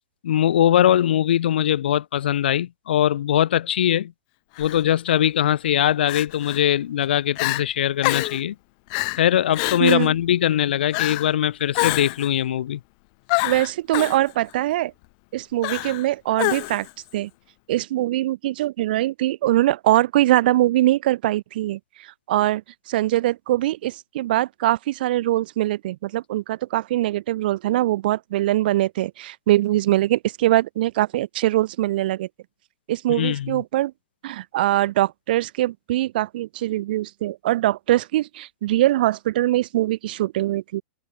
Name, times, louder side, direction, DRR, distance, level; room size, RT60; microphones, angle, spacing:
voice 1, 0.2-4.1 4.6-8.5 9.2-12.8 33.1-33.6, left 11 dB, 75° left, 0.6 m, -21 dB
Crying sobbing, 4.6-4.8 6.1-6.6 7.0-7.1 7.4-7.6 8.0-8.4 8.9-9.2 9.5-10.1 10.9-11.3 11.7-12.3 13.3-14.2 15.6-16.1 16.4-16.9, left 32 dB, 50° left, 1.1 m, -26 dB
voice 2, 9.8-10.1 13.4-14.9 15.3-16.9 17.1-17.3 17.7-21.8 22.3-22.6 22.9-32.3 32.9-33.9 34.2-40.8, right 15 dB, 60° right, 1.1 m, -22 dB
open air
hypercardioid pair, 115°, 6 cm